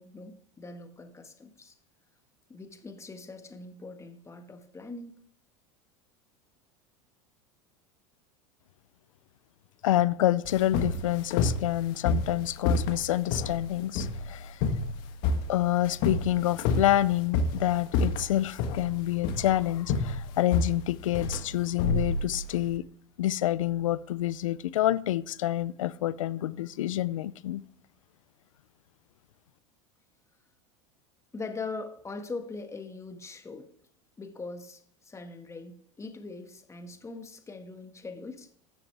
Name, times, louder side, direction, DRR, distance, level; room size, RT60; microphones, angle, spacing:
voice 1, 0.0-1.8 2.5-5.1 31.3-33.7 34.2-38.5, left 3 dB, 15° left, 6 dB, 1.6 m, -41 dB
voice 2, 9.8-14.6 15.5-22.9 23.2-27.6, left 14 dB, 85° left, 18 dB, 0.5 m, -27 dB
sound 1, 10.5-22.7, left 3 dB, 60° left, 1.5 m, -29 dB
12.5 x 7.1 x 3.4 m, 0.70 s
hypercardioid pair, 95°, 16 cm